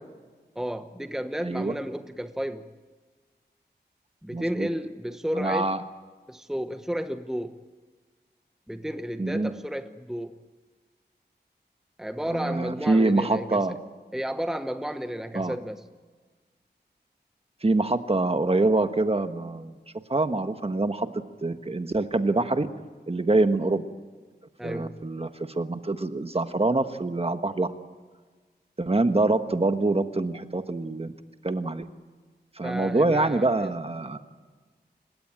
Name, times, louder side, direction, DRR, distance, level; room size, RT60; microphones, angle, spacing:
voice 1, 0.5-2.7 4.2-5.7 6.3-7.6 8.7-10.4 12.0-13.8 14.1-15.8 24.6-25.0 32.6-33.7, equal, 5° right, 9 dB, 1.0 m, -32 dB
voice 2, 1.4-1.7 4.3-4.7 5.4-5.8 9.2-9.5 12.3-13.8 15.3-15.5 17.6-19.8 20.1-21.1 21.4-22.7 23.1-23.8 24.6-25.3 25.5-27.7 28.8-31.1 31.4-31.8 32.6-34.2, right 2 dB, 35° right, 8 dB, 1.3 m, -25 dB
29.5 x 17.0 x 8.8 m, 1.4 s
wide cardioid pair, 85°, 18 cm